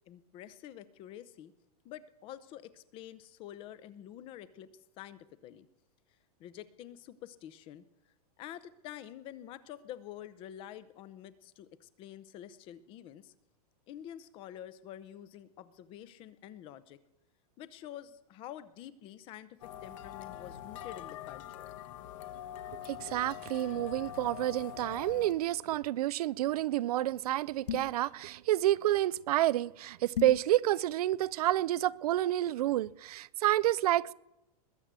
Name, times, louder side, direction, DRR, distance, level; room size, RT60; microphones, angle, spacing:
voice 1, 0.1-1.5 1.8-4.7 5.0-5.7 6.4-7.8 8.4-13.3 13.9-17.0 17.6-21.7, left 11 dB, 25° left, 0.7 m, -48 dB
sound 1, 19.6-25.3, left 10 dB, 50° left, 1.5 m, -44 dB
voice 2, 22.9-34.1, right 14 dB, 70° right, 0.5 m, -29 dB
sound 2, 27.7-28.1 30.1-30.5, left 9 dB, 80° left, 0.8 m, -35 dB
21.0 x 7.6 x 8.2 m
supercardioid pair, 165°, 20 cm